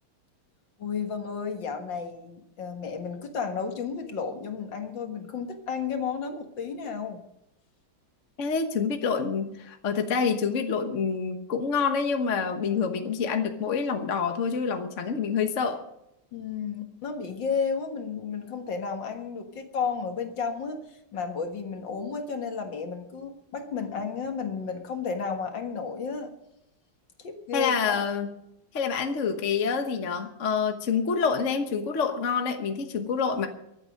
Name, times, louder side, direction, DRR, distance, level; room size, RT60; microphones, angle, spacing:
voice 1, 0.8-7.2 16.3-26.3 27.2-28.0, left 5 dB, 60° left, 5 dB, 2.2 m, -32 dB
voice 2, 8.4-15.8 27.5-28.3 28.7-33.5, left 6 dB, 40° left, 5 dB, 1.3 m, -27 dB
24.0 x 8.3 x 5.3 m, 0.82 s
omnidirectional pair, 2.3 m